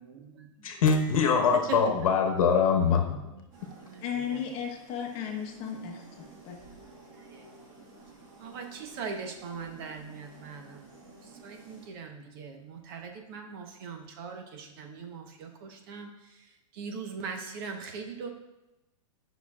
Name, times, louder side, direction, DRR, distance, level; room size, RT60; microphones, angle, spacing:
voice 1, 0.0-0.5 1.7-1.8 3.7-4.4 7.1-7.5 8.4-10.9 11.4-16.1 16.7-18.3, right 5 dB, 40° right, 4 dB, 1.0 m, -41 dB
voice 2, 0.6-3.2, left 6 dB, 75° left, 3 dB, 1.1 m, -23 dB
sound 1, 3.5-11.9, right 3 dB, 20° right, 1.5 m, -52 dB
voice 3, 4.0-6.6, left 8 dB, 30° left, 1 dB, 1.1 m, -35 dB
10.5 x 5.9 x 2.4 m, 0.97 s
hypercardioid pair, 160°, 18 cm